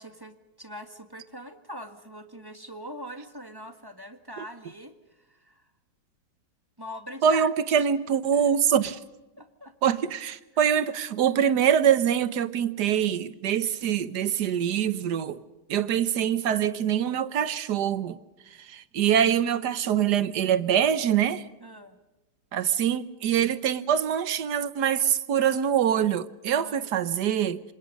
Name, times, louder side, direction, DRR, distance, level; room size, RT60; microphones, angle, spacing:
voice 1, 0.0-5.6 6.8-7.9 8.3-8.5 9.4-9.7 21.6-22.0 26.5-26.9, equal, 15° right, 1.6 m, -43 dB
voice 2, 7.2-9.0 9.8-15.4 15.7-18.2 18.6-21.4 22.5-27.6, right 9 dB, 70° right, 1.6 m, -24 dB
27.0 x 26.0 x 5.4 m
omnidirectional pair, 1.9 m